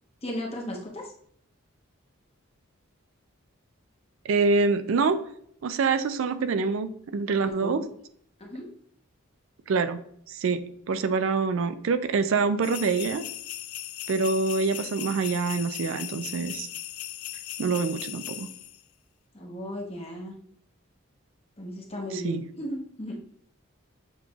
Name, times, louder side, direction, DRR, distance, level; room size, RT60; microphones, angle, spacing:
voice 1, 0.2-1.0 7.4-7.7 8.4-8.7 19.3-20.3 21.6-23.2, equal, 30° left, 0 dB, 0.9 m, -35 dB
voice 2, 4.2-5.2 5.6-7.8 9.7-10.0 10.3-13.2 14.1-16.7 17.6-18.5 22.1-22.4, right 4 dB, 65° right, 11 dB, 0.4 m, -26 dB
sound 1, 12.6-18.8, left 14 dB, 80° left, 0.3 m, -38 dB
7.1 x 3.2 x 2.3 m, 0.66 s
head